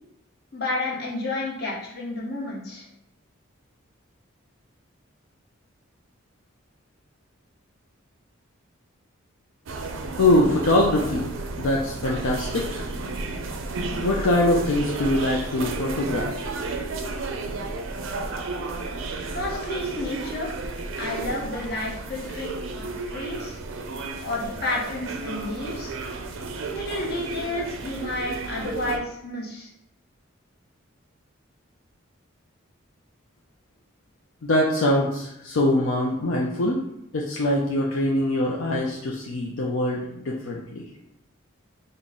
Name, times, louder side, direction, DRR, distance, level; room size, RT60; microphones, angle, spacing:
voice 1, 0.5-2.9 19.3-20.5 21.0-23.6 24.2-25.9 26.7-29.7, left 2 dB, 50° left, -4 dB, 1.0 m, -31 dB
sound 1, 9.7-29.0, right 3 dB, 65° right, 0.4 m, -33 dB
voice 2, 10.2-11.3 11.6-12.9 14.0-16.3 34.4-36.8 37.1-40.8, left 1 dB, 70° left, -2 dB, 0.5 m, -23 dB
3.8 x 2.2 x 3.6 m, 0.79 s
head